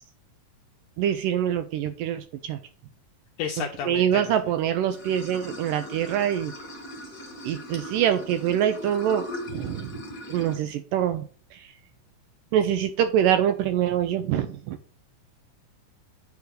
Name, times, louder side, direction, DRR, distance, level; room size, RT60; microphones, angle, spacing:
voice 1, 1.0-2.6 3.6-6.5 7.4-9.9 10.3-11.3 11.5-11.7 12.5-14.8, right 10 dB, 80° right, 9 dB, 2.0 m, -25 dB
voice 2, 3.4-4.4, left 8 dB, 80° left, 4 dB, 1.8 m, -32 dB
Water / Sink (filling or washing), 4.9-10.6, left 1 dB, 45° left, 1.2 m, -38 dB
9.4 x 3.5 x 6.3 m, 0.40 s
omnidirectional pair, 4.3 m